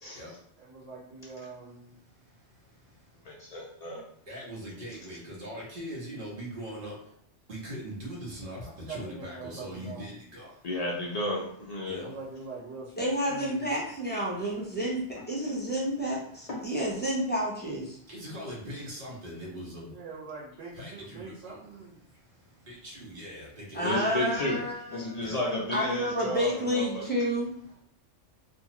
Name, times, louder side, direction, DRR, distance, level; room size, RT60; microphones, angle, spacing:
voice 1, 0.6-2.0 6.8-6.9 8.6-10.2 12.0-13.7 19.9-22.1, right 3 dB, 85° right, -7 dB, 1.3 m, -43 dB
voice 2, 3.2-4.0 10.6-12.0 15.5-15.6 16.5-16.6 23.8-24.6 24.9-27.0, left 1 dB, 60° left, -2 dB, 0.4 m, -32 dB
voice 3, 4.3-6.9 7.5-10.5 11.9-12.1 18.1-19.9 20.8-21.6 22.7-24.5 25.2-25.4, equal, 50° right, -5 dB, 1.1 m, -41 dB
voice 4, 13.0-18.0 23.7-25.3 25.7-27.5, equal, 10° left, -5 dB, 0.6 m, -30 dB
2.6 x 2.3 x 2.9 m, 0.64 s
omnidirectional pair, 1.2 m